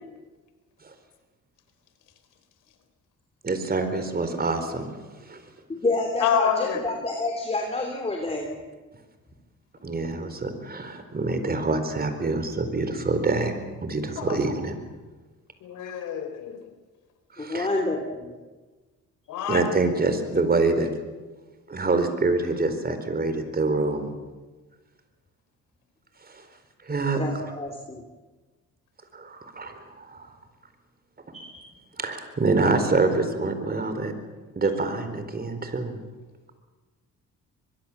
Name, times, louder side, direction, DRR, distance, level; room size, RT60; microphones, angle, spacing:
voice 1, 3.4-4.9 5.3-5.4 9.8-13.5 13.8-14.8 17.3-17.7 19.5-20.9 21.7-24.1 26.3-26.5 26.8-27.5 29.1-30.3 32.0-34.1 34.5-36.0, right 3 dB, 30° right, 9 dB, 4.3 m, -26 dB
voice 2, 5.7-8.5 17.4-18.3 27.2-28.0 31.3-31.6, left 2 dB, 20° left, 3 dB, 3.3 m, -28 dB
voice 3, 6.2-6.8 14.2-14.4 15.6-16.6 19.3-19.6, left 8 dB, 85° left, 7 dB, 4.0 m, -26 dB
23.5 x 22.5 x 7.5 m, 1.3 s
cardioid pair, 90°, 30 cm